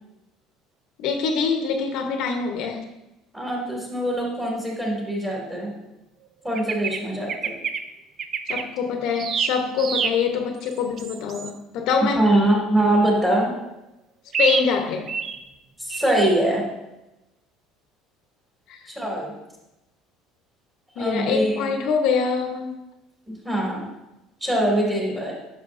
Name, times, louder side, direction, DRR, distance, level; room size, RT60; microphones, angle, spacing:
voice 1, 1.0-2.9 8.5-12.2 14.4-15.2 18.7-18.8 21.0-22.7, left 5 dB, 65° left, 4 dB, 0.9 m, -24 dB
voice 2, 3.3-5.8 6.4-7.5 12.1-13.5 15.8-16.6 18.9-19.3 21.0-21.7 23.3-23.8 24.4-25.3, right 1 dB, 10° right, -3 dB, 2.4 m, -23 dB
sound 1, 6.5-7.0 7.3-7.8 8.2-8.6 9.2-10.2 10.7-11.5 14.3-14.7 15.1-15.4 15.9-16.1, right 6 dB, 40° right, 0.4 m, -26 dB
9.6 x 6.3 x 2.6 m, 0.96 s
cardioid pair, 135°, 0 cm